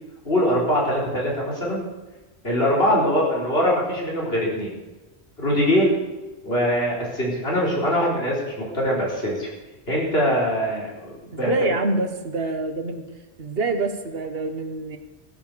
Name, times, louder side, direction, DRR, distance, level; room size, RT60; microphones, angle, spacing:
voice 1, 0.2-1.8 2.4-4.7 5.4-5.9 6.4-9.5 9.9-11.7, equal, 65° left, -5 dB, 4.5 m, -22 dB
voice 2, 11.3-13.0 13.4-15.0, right 3 dB, 65° right, 7 dB, 1.4 m, -26 dB
16.0 x 7.6 x 6.8 m, 1.1 s
omnidirectional pair, 1.1 m